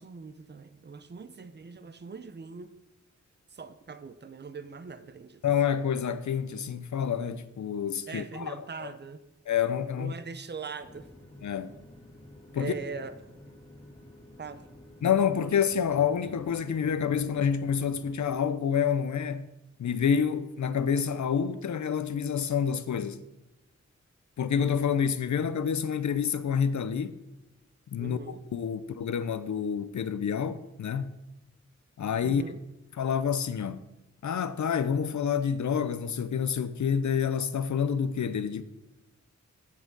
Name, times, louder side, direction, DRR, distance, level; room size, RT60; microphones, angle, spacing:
voice 1, 0.0-2.7 3.5-5.4 8.1-9.2 10.0-11.1 12.5-13.1 14.4-14.6 28.0-28.4 32.2-32.6, right 5 dB, 35° right, 0.6 m, -41 dB
voice 2, 5.4-8.9 9.5-10.1 11.4-11.8 12.5-12.7 15.0-19.5 19.8-23.3 24.4-27.2 27.9-31.2 32.0-32.4 32.9-33.9 34.2-38.6, left 7 dB, 75° left, 0.5 m, -28 dB
sound 1, 10.8-18.1, left 1 dB, 20° left, 2.2 m, -51 dB
7.3 x 6.3 x 5.2 m
wide cardioid pair, 75°, 29 cm